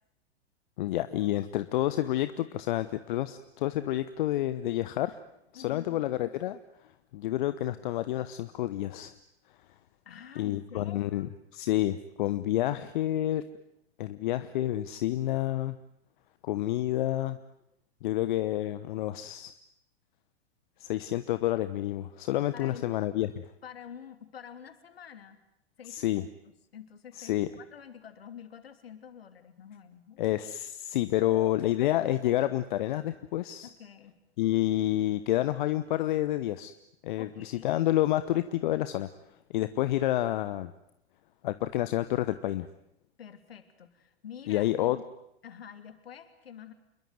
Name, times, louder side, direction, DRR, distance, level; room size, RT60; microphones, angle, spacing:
voice 1, 0.8-5.2 5.5-6.6 7.1-9.1 10.4-13.4 14.0-15.8 16.4-17.4 18.0-19.5 20.8-23.5 25.9-26.3 27.2-27.5 30.2-33.7 34.4-36.7 37.0-39.1 39.5-40.7 41.4-42.7 44.5-45.0, left 14 dB, 50° left, 13 dB, 1.1 m, -29 dB
voice 2, 5.5-6.1 10.0-11.3 22.5-22.9 23.6-25.4 25.8-26.2 26.7-30.2 31.2-31.7 33.6-34.1 37.2-37.7 43.2-45.0 45.4-46.7, left 8 dB, 65° left, 10 dB, 3.2 m, -47 dB
28.0 x 22.0 x 9.4 m, 0.79 s
figure-of-eight pair, 100°, 32 cm